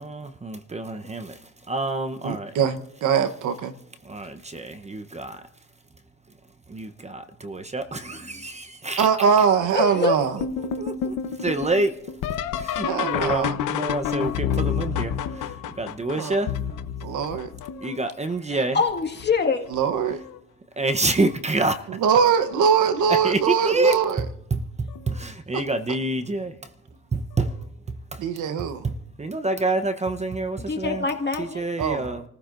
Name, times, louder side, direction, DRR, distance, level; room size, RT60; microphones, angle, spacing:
voice 1, 0.0-2.5 4.0-5.4 6.7-9.1 9.9-10.1 10.6-12.2 12.5-16.7 17.8-18.8 20.8-22.0 23.1-26.7 27.1-28.2 28.8-31.0 31.4-32.2, right 2 dB, 20° right, 0.9 m, -28 dB
voice 2, 2.2-3.7 9.0-10.4 12.8-13.6 16.1-16.4 17.0-17.5 19.7-20.2 21.9-24.2 25.5-25.6 28.2-28.8 31.8-32.1, right 7 dB, 80° right, 1.1 m, -22 dB
voice 3, 9.7-10.2 18.5-19.7 30.7-31.6, left 4 dB, 35° left, 1.9 m, -24 dB
sound 1, 10.4-18.1 18.7-19.3 19.7-20.4 21.6-21.7 22.5-22.8 24.9-25.1 27.4-27.5, left 8 dB, 85° left, 1.0 m, -29 dB
28.5 x 14.5 x 2.6 m
cardioid pair, 90°, 30 cm